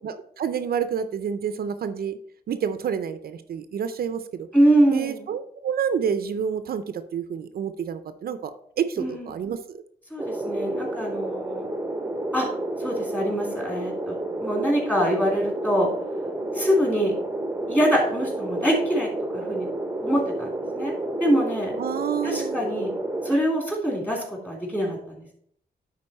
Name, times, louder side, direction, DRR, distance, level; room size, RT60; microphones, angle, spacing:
voice 1, 0.0-2.2 2.5-4.5 4.9-8.5 8.8-9.8 21.8-22.6, right 7 dB, 65° right, 11 dB, 0.5 m, -28 dB
voice 2, 4.5-5.2 9.0-9.3 10.1-11.7 12.3-12.5 12.8-14.1 14.4-15.9 16.6-17.1 17.7-19.7 20.0-20.9 21.2-21.7 22.2-22.9 23.2-25.0, equal, 10° left, -1 dB, 2.9 m, -24 dB
sound 1, 10.2-23.4, right 1 dB, 10° right, 0.8 m, -30 dB
9.9 x 4.1 x 4.2 m, 0.68 s
cardioid pair, 110°, 16 cm